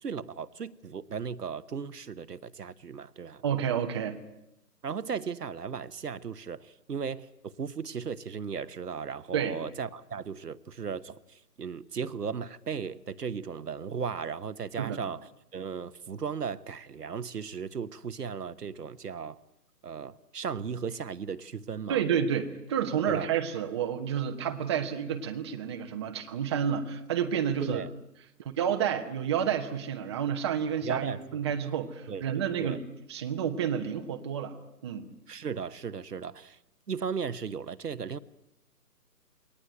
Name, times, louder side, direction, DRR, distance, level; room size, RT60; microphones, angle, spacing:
voice 1, 0.0-3.4 4.8-19.4 19.8-22.0 23.1-23.3 27.6-27.9 30.8-31.2 32.1-32.2 32.6-32.8 35.3-36.6 36.9-38.2, right 6 dB, 70° right, 1.1 m, -36 dB
voice 2, 3.4-4.2 9.3-9.6 14.8-15.0 21.9-27.8 28.6-32.8 33.1-34.6 34.8-35.0, right 8 dB, 15° right, 1.0 m, -30 dB
22.5 x 18.5 x 9.1 m
figure-of-eight pair, 145°, 49 cm